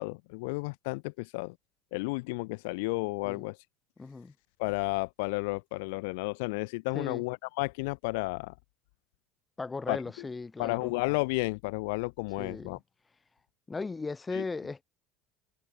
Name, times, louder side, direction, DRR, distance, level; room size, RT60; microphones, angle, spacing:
voice 1, 0.0-1.5 1.9-3.6 4.6-8.5 9.9-10.0 10.6-12.8 14.3-14.4, left 27 dB, 85° left, 0.9 m, -32 dB
voice 2, 4.0-4.3 6.9-7.2 9.6-10.9 12.4-12.7 13.7-14.8, left 4 dB, 15° left, 1.6 m, -37 dB
cardioid pair, 145°, 0 cm